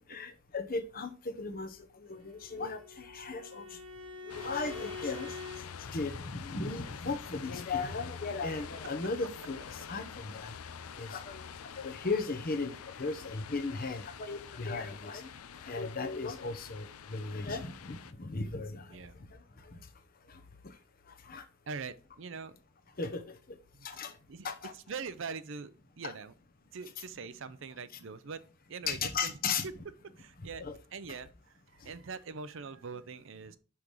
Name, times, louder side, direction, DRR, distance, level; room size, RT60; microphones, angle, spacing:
voice 1, 0.1-3.8 4.3-5.4 5.8-10.5 11.0-11.5 11.8-15.3 15.6-19.0 19.7-19.8 20.6-20.7 21.2-21.4 23.0-23.4 23.8-24.1 24.4-24.7 26.0-26.1 28.8-29.7 30.6-30.8 31.1-31.2, left 4 dB, 40° left, 0.9 m, -36 dB
Bowed string instrument, 2.1-5.7, left 3 dB, 80° right, 1.2 m, -45 dB
sound 1, 4.3-18.1, left 7 dB, 80° left, 0.5 m, -46 dB
voice 2, 21.7-22.6 24.3-24.5 24.9-26.3 26.7-28.4 28.7-29.7 30.2-30.6 30.9-31.3 31.7-33.6, right 5 dB, 60° right, 0.5 m, -42 dB
6.0 x 5.2 x 4.7 m
head